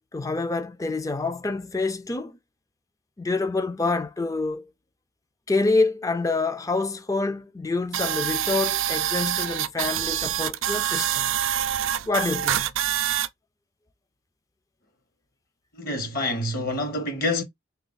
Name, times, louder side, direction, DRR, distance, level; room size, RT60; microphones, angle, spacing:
voice 1, 0.1-2.4 3.2-4.7 5.5-11.3 12.1-12.7, left 3 dB, 15° left, 0.3 m, -27 dB
sound 1, 7.9-13.3, right 11 dB, 75° right, 0.4 m, -26 dB
voice 2, 15.7-17.4, left 2 dB, 45° left, 0.9 m, -27 dB
3.5 x 2.3 x 3.9 m
head